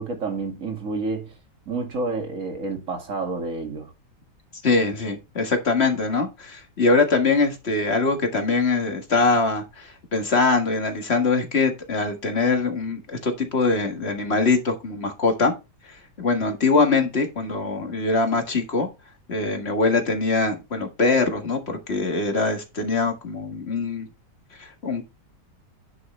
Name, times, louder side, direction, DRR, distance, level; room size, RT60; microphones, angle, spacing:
voice 1, 0.0-1.3 1.7-3.9, right 3 dB, 45° right, 2.2 m, -29 dB
voice 2, 4.6-15.5 16.2-18.9 19.3-24.1 24.6-25.0, left 3 dB, 35° left, 1.9 m, -23 dB
10.0 x 6.1 x 3.3 m
omnidirectional pair, 1.9 m